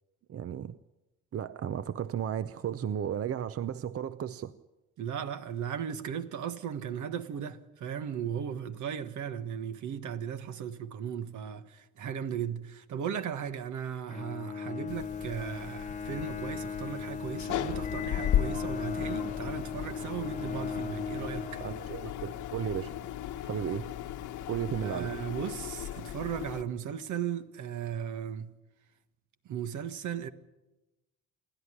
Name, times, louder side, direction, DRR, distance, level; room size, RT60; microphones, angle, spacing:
voice 1, 0.3-0.8 1.3-4.5 21.6-22.9 23.4-23.9 24.5-25.1, right 9 dB, 50° right, 0.7 m, -34 dB
voice 2, 5.0-21.6 24.8-28.5 29.4-30.3, right 8 dB, 75° right, 1.5 m, -36 dB
Bowed string instrument, 14.1-22.3, left 5 dB, 25° left, 1.0 m, -38 dB
sound 1, 14.9-26.6, left 11 dB, 90° left, 1.4 m, -36 dB
28.0 x 11.5 x 9.9 m
cardioid pair, 90°, 30 cm